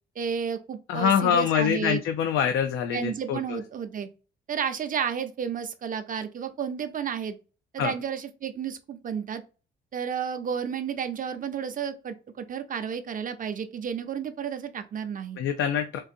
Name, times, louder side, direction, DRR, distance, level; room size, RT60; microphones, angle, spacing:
voice 1, 0.2-2.0 2.9-4.1 4.5-7.4 7.7-9.4 9.9-15.4, right 7 dB, 45° right, 0.6 m, -32 dB
voice 2, 0.9-3.6 7.8-7.9 15.4-16.0, left 8 dB, 80° left, 0.4 m, -25 dB
3.9 x 2.5 x 2.5 m
cardioid pair, 90°, 20 cm